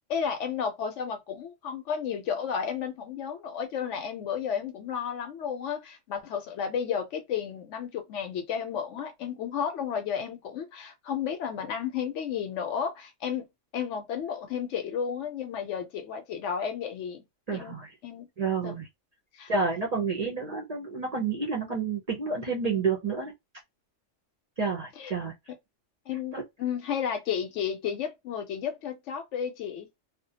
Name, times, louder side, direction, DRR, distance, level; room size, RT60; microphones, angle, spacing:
voice 1, 0.1-13.5 13.7-17.2 17.5-17.7 18.0-18.3 18.6-18.7 19.3-19.5 25.0-25.1 26.1-29.9, left 7 dB, 75° left, 0.9 m, -32 dB
voice 2, 17.5-17.9 18.4-18.9 19.5-23.3 24.6-25.3 26.3-26.4, right 4 dB, 45° right, 0.5 m, -29 dB
2.4 x 2.1 x 2.7 m
omnidirectional pair, 1.3 m